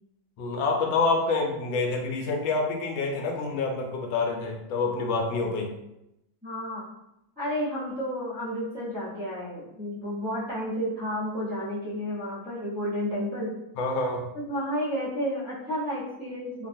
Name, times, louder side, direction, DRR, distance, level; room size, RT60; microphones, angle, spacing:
voice 1, 0.4-5.7 13.8-14.2, left 3 dB, 80° left, 1 dB, 1.3 m, -27 dB
voice 2, 6.4-6.8 7.4-13.5 14.3-16.7, equal, 10° right, -11 dB, 0.5 m, -31 dB
3.1 x 2.2 x 2.6 m, 0.85 s
omnidirectional pair, 2.1 m